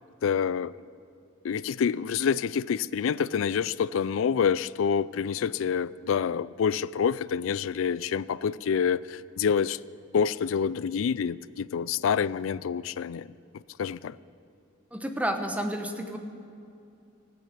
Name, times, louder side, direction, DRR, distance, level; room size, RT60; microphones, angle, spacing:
voice 1, 0.2-0.7 1.4-9.8 10.1-13.3 13.8-14.2, left 7 dB, 75° left, 19 dB, 0.4 m, -27 dB
voice 2, 14.9-16.2, equal, 5° right, 5 dB, 1.0 m, -30 dB
15.0 x 9.8 x 8.3 m, 2.5 s
head